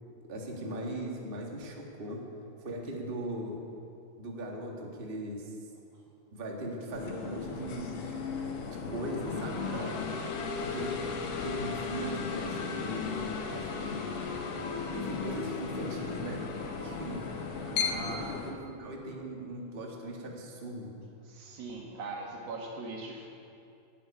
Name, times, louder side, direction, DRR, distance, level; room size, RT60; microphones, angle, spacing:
voice 1, 0.3-2.2 2.6-3.7 4.2-5.5 6.3-8.3 8.7-10.1 10.6-11.1 11.4-14.0 14.9-17.3 17.8-20.9, right 1 dB, 35° right, 0 dB, 0.8 m, -39 dB
sound 1, 6.9-18.5, left 5 dB, 70° left, 2.8 m, -35 dB
voice 2, 17.6-18.3 21.3-23.3, right 3 dB, 85° right, -1 dB, 3.7 m, -40 dB
11.5 x 8.4 x 9.9 m, 2.5 s
omnidirectional pair, 4.0 m